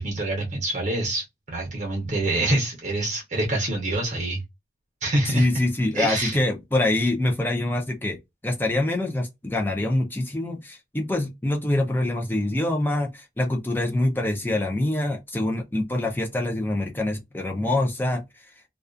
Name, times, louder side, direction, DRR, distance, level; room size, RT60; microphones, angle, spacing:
voice 1, 0.0-4.4 5.0-5.5 5.9-6.4, right 2 dB, 45° right, 0.7 m, -26 dB
voice 2, 5.2-8.2 8.4-18.5, left 1 dB, 10° left, 0.4 m, -25 dB
2.3 x 2.3 x 2.4 m
head